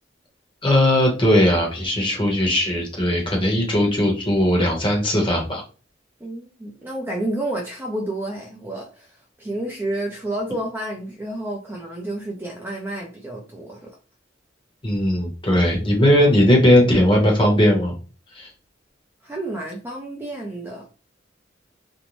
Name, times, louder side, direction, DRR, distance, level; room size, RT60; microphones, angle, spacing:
voice 1, 0.6-5.6 14.8-17.9 18.4-18.5, left 1 dB, 25° left, 0 dB, 0.9 m, -18 dB
voice 2, 6.2-13.9 19.2-20.8, right 1 dB, 10° right, -1 dB, 0.4 m, -30 dB
2.6 x 2.1 x 3.0 m, 0.35 s
head